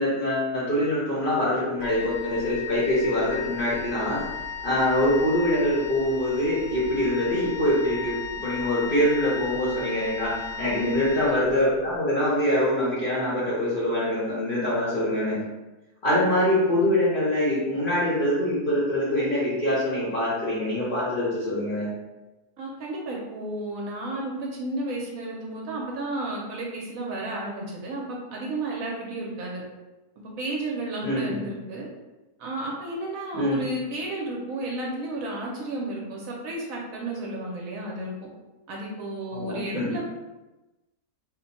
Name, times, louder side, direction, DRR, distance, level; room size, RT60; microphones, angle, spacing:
voice 1, 0.0-4.2 4.6-15.4 16.0-21.9 31.0-31.4 33.3-33.6 39.3-39.9, left 1 dB, 45° left, -8 dB, 0.7 m, -24 dB
Wind instrument woodwind instrument, 1.8-11.9, left 6 dB, 80° left, 1.1 m, -36 dB
voice 2, 10.6-10.9 22.6-29.6 30.2-31.9 32.4-38.1 38.7-40.1, right 2 dB, 65° right, -2 dB, 1.0 m, -32 dB
2.7 x 2.2 x 4.0 m, 1.1 s
omnidirectional pair, 1.7 m